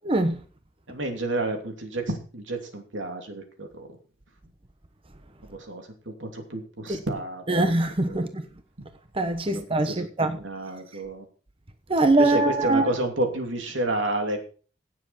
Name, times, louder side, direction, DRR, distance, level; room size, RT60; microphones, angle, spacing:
voice 1, 0.0-0.4 7.5-8.4 9.2-10.4 11.9-12.9, right 2 dB, 30° right, 1.0 m, -22 dB
voice 2, 0.9-3.9 5.5-7.6 8.1-8.3 9.4-11.3 12.2-14.4, right 1 dB, 90° right, 2.9 m, -30 dB
17.0 x 7.7 x 4.4 m
head